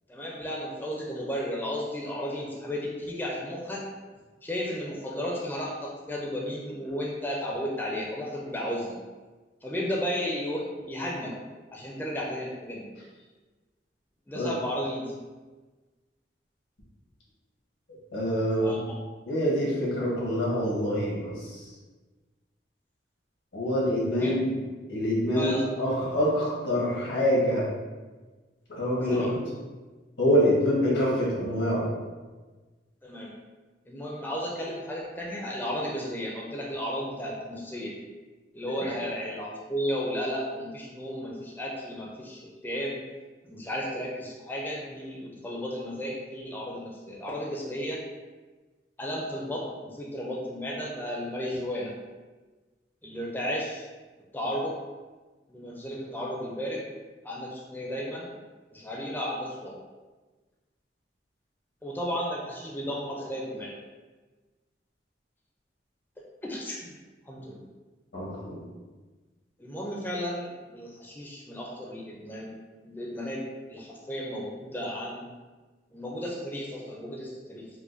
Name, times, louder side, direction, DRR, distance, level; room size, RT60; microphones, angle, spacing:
voice 1, 0.1-3.9 4.4-9.0 9.6-11.3 11.7-12.9 14.3-15.1 18.6-18.9 24.2-24.3 25.3-25.6 29.1-29.3 33.0-33.3 33.9-37.9 38.5-43.0 43.4-48.0 49.0-51.9 53.0-53.9 54.3-54.8 55.5-56.9 57.2-58.3 58.7-59.8 61.8-63.7 66.4-66.9 67.3-67.7 69.6-75.3 75.9-77.7, equal, 10° left, -3 dB, 0.4 m, -34 dB
voice 2, 18.1-18.7 19.3-21.6 23.5-24.5 24.9-27.6 28.7-29.3 30.2-31.9 38.8-38.9 68.1-68.6, equal, 90° left, -5 dB, 1.2 m, -25 dB
4.7 x 2.2 x 2.5 m, 1.3 s
head